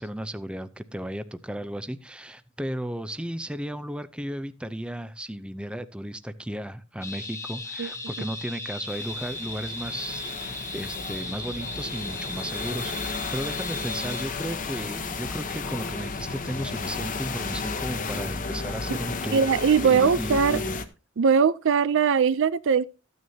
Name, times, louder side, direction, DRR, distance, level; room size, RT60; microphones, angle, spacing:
voice 1, 0.0-19.4 19.8-20.8, right 1 dB, 5° right, 0.5 m, -34 dB
sound 1, 7.0-14.2, left 2 dB, 10° left, 1.5 m, -36 dB
sound 2, 8.9-20.8, left 4 dB, 40° left, 1.0 m, -33 dB
voice 2, 19.3-20.6 21.2-22.9, right 6 dB, 60° right, 0.4 m, -21 dB
14.0 x 9.5 x 2.7 m
head